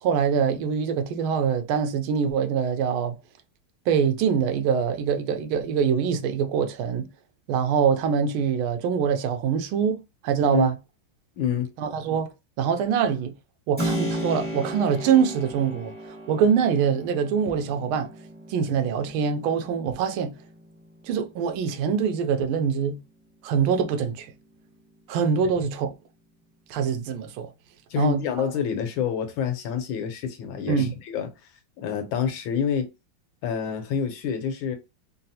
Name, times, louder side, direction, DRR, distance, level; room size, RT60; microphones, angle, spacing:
voice 1, 0.0-3.1 3.9-7.1 7.5-10.7 11.8-13.3 13.7-18.1 18.5-20.4 21.0-23.0 23.4-24.3 25.1-25.9 26.7-27.5 28.0-28.2 30.7-30.9, right 7 dB, 85° right, 1.4 m, -24 dB
voice 2, 11.4-11.7 27.9-31.3 31.8-32.9 33.4-34.8, left 7 dB, 75° left, 1.5 m, -27 dB
Keyboard (musical), 13.8-22.3, equal, 5° right, 0.9 m, -35 dB
3.9 x 2.0 x 2.7 m
omnidirectional pair, 2.3 m